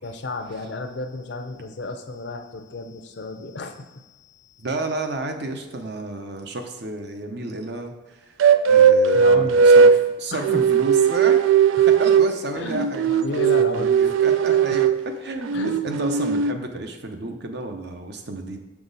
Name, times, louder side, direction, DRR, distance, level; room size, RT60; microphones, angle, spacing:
voice 1, 0.0-4.7 9.1-9.8 10.3-10.6 11.8-11.9 12.6-14.0 14.7-14.8 15.5-15.8, left 2 dB, 60° left, 7 dB, 0.6 m, -33 dB
voice 2, 4.6-8.3 8.7-11.4 11.9-18.6, right 2 dB, 60° right, 5 dB, 0.8 m, -31 dB
sound 1, 8.4-10.0 10.4-12.3 12.7-15.0 15.5-16.5, right 6 dB, 80° right, 0.3 m, -17 dB
6.0 x 5.9 x 4.0 m, 1.1 s
head